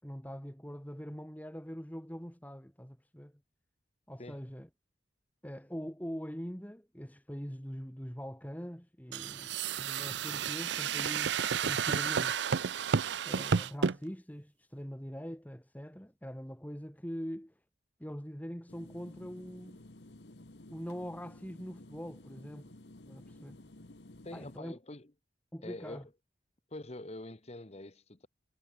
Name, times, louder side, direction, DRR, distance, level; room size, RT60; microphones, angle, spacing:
voice 1, 0.0-3.3 4.1-4.7 5.4-12.4 13.3-17.6 18.0-19.9 20.7-22.8 23.1-23.6 24.3-24.7 25.5-26.1, equal, 10° left, 3.6 m, -43 dB
sound 1, 9.1-14.0, right 6 dB, 75° right, 0.5 m, -31 dB
sound 2, 18.7-24.6, left 1 dB, 70° left, 1.5 m, -53 dB
voice 2, 24.2-25.1 25.6-26.0 26.7-28.3, left 2 dB, 35° left, 1.3 m, -45 dB
head